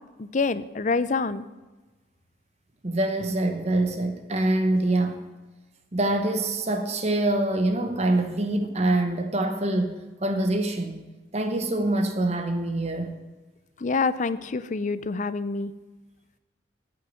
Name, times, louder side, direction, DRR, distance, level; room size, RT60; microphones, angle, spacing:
voice 1, 0.2-1.5 13.8-15.7, left 4 dB, 40° left, 0.5 m, -26 dB
voice 2, 2.8-5.2 5.9-11.0 11.3-13.1, right 2 dB, 35° right, 0.9 m, -25 dB
10.0 x 6.5 x 9.0 m
head